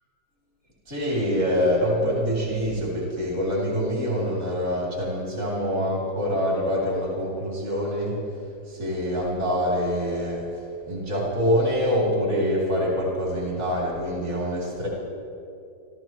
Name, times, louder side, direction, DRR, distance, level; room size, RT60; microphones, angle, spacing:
voice 1, 0.9-8.2 8.7-10.4 10.9-14.9, equal, 40° right, -5 dB, 3.7 m, -25 dB
26.5 x 14.5 x 3.1 m, 2.5 s
omnidirectional pair, 1.9 m